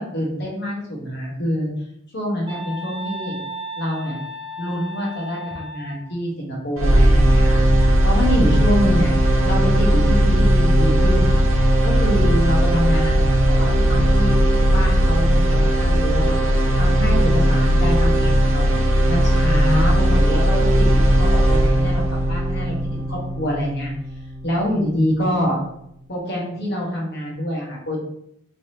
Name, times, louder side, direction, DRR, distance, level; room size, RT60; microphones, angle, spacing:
voice 1, 0.0-1.7 2.1-3.4 3.8-4.2 4.6-9.1 9.4-11.3 11.8-14.3 14.7-16.4 16.8-18.8 19.1-22.0 22.3-23.9 24.4-25.6 26.1-28.0, equal, 55° left, -3 dB, 1.3 m, -25 dB
sound 1, 2.5-6.1, equal, 25° right, 0.5 m, -34 dB
sound 2, 6.8-24.8, equal, 75° right, 0.6 m, -17 dB
3.7 x 3.3 x 2.8 m, 0.74 s
head